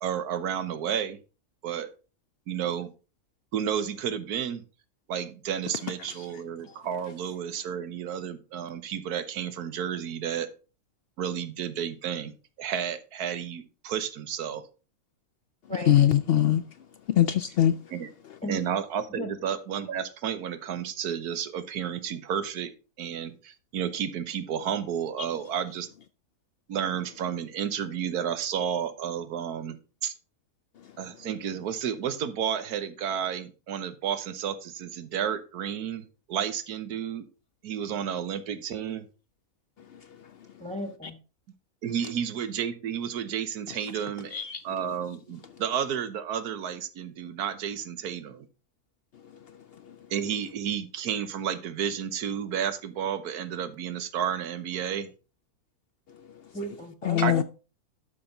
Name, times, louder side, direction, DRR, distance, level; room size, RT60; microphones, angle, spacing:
voice 1, 0.0-1.2 1.6-1.9 2.5-2.9 3.5-4.6 5.1-10.5 11.2-12.3 12.6-14.6 17.9-18.1 18.5-22.7 23.0-25.9 26.7-29.8 30.0-30.1 31.0-37.3 37.6-39.1 41.8-48.5 50.1-55.1 57.2-57.4, right 8 dB, 90° right, 1.4 m, -31 dB
voice 2, 15.9-16.6 17.2-17.7 44.3-44.6 57.1-57.4, left 11 dB, 90° left, 0.5 m, -21 dB
voice 3, 40.6-41.2 56.5-57.4, equal, 5° left, 1.2 m, -35 dB
11.5 x 6.0 x 3.8 m
omnidirectional pair, 1.6 m